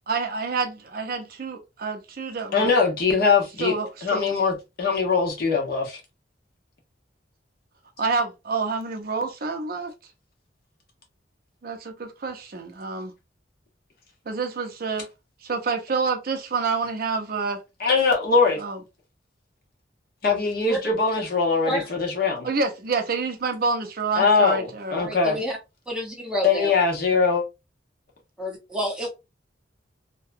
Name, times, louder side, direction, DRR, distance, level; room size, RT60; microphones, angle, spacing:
voice 1, 0.1-2.7 3.6-4.3 8.0-9.9 11.6-13.1 14.3-15.1 15.4-17.6 18.6-18.8 22.4-24.9 25.3-25.4, right 4 dB, 50° right, 0.5 m, -28 dB
voice 2, 2.5-3.8 4.0-6.0 17.8-18.6 20.2-22.5 24.2-25.4 26.4-27.4, left 4 dB, 55° left, 0.9 m, -22 dB
voice 3, 24.9-25.6 25.9-26.8 28.4-29.1, equal, 5° right, 0.8 m, -29 dB
2.7 x 2.2 x 2.4 m
head